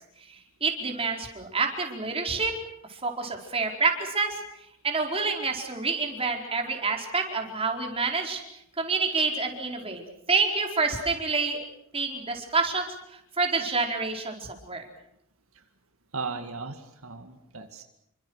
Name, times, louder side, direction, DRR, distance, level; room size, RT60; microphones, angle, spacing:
voice 1, 0.3-2.5 2.9-4.4 4.8-8.4 8.8-10.0 10.3-11.6 11.9-14.8, right 4 dB, 25° right, 2 dB, 4.6 m, -28 dB
voice 2, 16.1-17.8, right 4 dB, 85° right, 6 dB, 2.2 m, -36 dB
28.5 x 25.0 x 6.6 m, 0.75 s
head